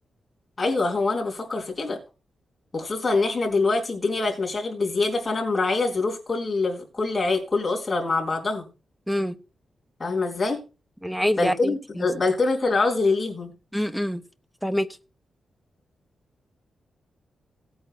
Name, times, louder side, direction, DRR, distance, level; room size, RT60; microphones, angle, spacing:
voice 1, 0.6-2.0 2.7-8.7 10.0-10.6 11.4-13.5, left 3 dB, 25° left, -1 dB, 3.9 m, -24 dB
voice 2, 9.1-9.4 11.0-12.1 13.7-14.2 14.6-14.9, equal, ahead, 10 dB, 0.8 m, -26 dB
18.5 x 8.8 x 2.3 m, 0.30 s
wide cardioid pair, 140°, 0 cm